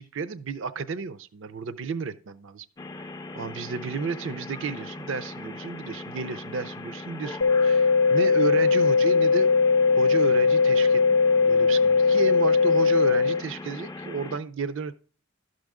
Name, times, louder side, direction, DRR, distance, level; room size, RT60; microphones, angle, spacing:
voice 1, 0.0-2.7 3.0-9.5 9.9-15.0, right 4 dB, 65° right, 14 dB, 0.5 m, -32 dB
sound 1, 2.8-14.4, left 2 dB, 15° left, 0.4 m, -39 dB
sound 2, 7.4-13.4, left 5 dB, 75° left, 0.6 m, -20 dB
12.0 x 6.4 x 3.6 m, 0.42 s
head